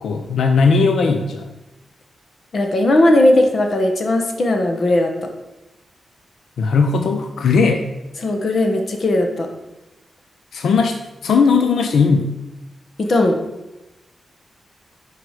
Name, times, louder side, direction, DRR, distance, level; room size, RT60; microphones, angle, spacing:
voice 1, 0.0-1.5 6.6-7.8 10.5-11.0 11.2-12.3, left 5 dB, 85° left, 5 dB, 0.7 m, -17 dB
voice 2, 2.5-5.3 8.2-9.5 13.0-13.4, left 1 dB, 45° left, 4 dB, 1.2 m, -17 dB
10.5 x 4.9 x 4.9 m, 0.99 s
wide cardioid pair, 155°, 0 cm